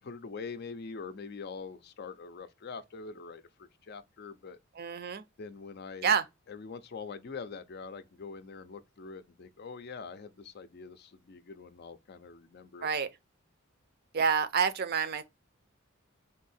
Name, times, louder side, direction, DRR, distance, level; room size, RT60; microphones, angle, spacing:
voice 1, 0.0-4.6 5.4-6.1 6.5-12.9, left 4 dB, 50° left, 0.5 m, -44 dB
voice 2, 4.7-5.2 6.0-6.2 12.8-13.1 14.1-15.2, right 6 dB, 50° right, 0.5 m, -28 dB
3.6 x 2.7 x 4.1 m
head